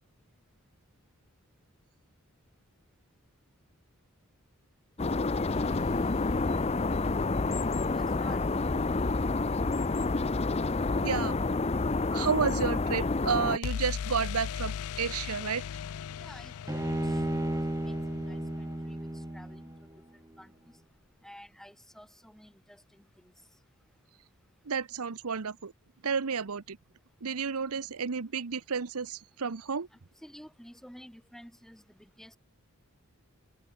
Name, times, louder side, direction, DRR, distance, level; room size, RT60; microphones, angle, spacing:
sound 1, 5.0-13.6, left 3 dB, 30° left, 0.6 m, -28 dB
sound 2, 5.5-7.5 13.6-19.4, left 7 dB, 85° left, 0.4 m, -39 dB
voice 1, 7.9-8.4 16.2-16.7 17.0-17.2 17.5-18.0 18.3-19.6 20.4-20.5 21.2-23.3 29.9-32.4, equal, ahead, 3.4 m, -52 dB
voice 2, 11.0-11.3 12.1-15.6 24.7-25.7 26.0-26.8 27.2-29.9, right 6 dB, 85° right, 0.9 m, -31 dB
Bowed string instrument, 16.7-20.0, right 1 dB, 15° right, 0.7 m, -33 dB
head